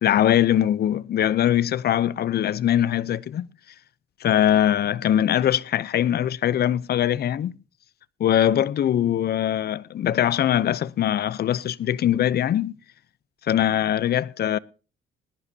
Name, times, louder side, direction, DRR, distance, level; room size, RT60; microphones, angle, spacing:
voice 1, 0.0-3.5 4.2-7.6 8.2-12.7 13.4-14.6, left 11 dB, 55° left, 0.5 m, -22 dB
20.0 x 11.0 x 2.7 m
cardioid pair, 90°, 20 cm